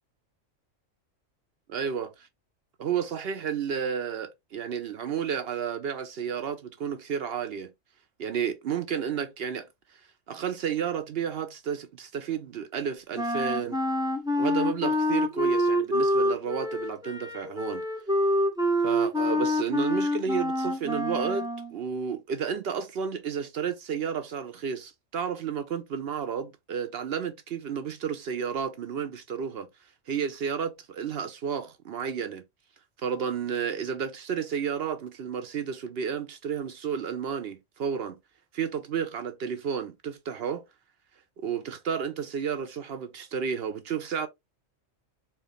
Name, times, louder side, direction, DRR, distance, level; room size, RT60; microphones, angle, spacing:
voice 1, 1.7-2.1 2.8-7.7 8.2-9.7 10.3-13.8 14.4-17.8 18.8-29.7 30.1-32.4 33.0-38.1 38.5-40.6 41.4-44.3, right 7 dB, 60° right, 0.7 m, -31 dB
Wind instrument woodwind instrument, 13.1-21.7, left 1 dB, 5° right, 0.3 m, -26 dB
4.3 x 2.4 x 3.4 m
omnidirectional pair, 1.3 m